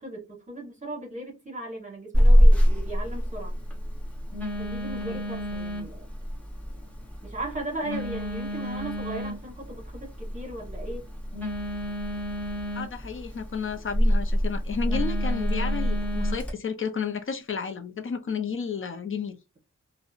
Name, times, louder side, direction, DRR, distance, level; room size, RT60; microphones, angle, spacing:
voice 1, 0.0-3.5 4.6-6.1 7.2-11.1, right 2 dB, 25° right, 1.0 m, -37 dB
Telephone, 2.1-16.5, equal, 5° left, 0.8 m, -25 dB
voice 2, 12.7-19.4, left 6 dB, 45° left, 0.5 m, -32 dB
2.7 x 2.0 x 2.4 m
wide cardioid pair, 115°, 29 cm